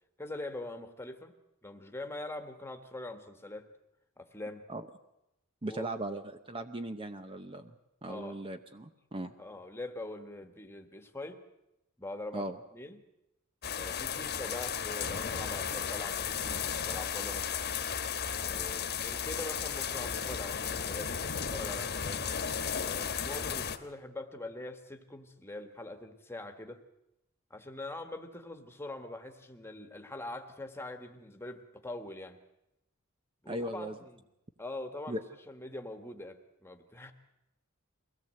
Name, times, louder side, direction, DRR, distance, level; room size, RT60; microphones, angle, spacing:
voice 1, 0.2-1.3 1.6-3.7 4.2-4.6 5.7-5.9 8.1-8.4 9.4-11.4 12.0-13.0 13.8-17.5 18.5-21.1 21.5-22.3 22.8-26.8 27.5-32.4 33.4-34.2 34.6-35.2 35.5-37.1, left 2 dB, 10° left, 6 dB, 1.6 m, -43 dB
voice 2, 5.6-7.7 8.0-9.3 12.3-12.6 33.5-34.0 35.1-35.2, right 1 dB, 25° right, 8 dB, 0.8 m, -38 dB
sound 1, 13.6-23.8, left 7 dB, 50° left, 1.4 m, -34 dB
22.5 x 17.0 x 7.7 m, 0.88 s
head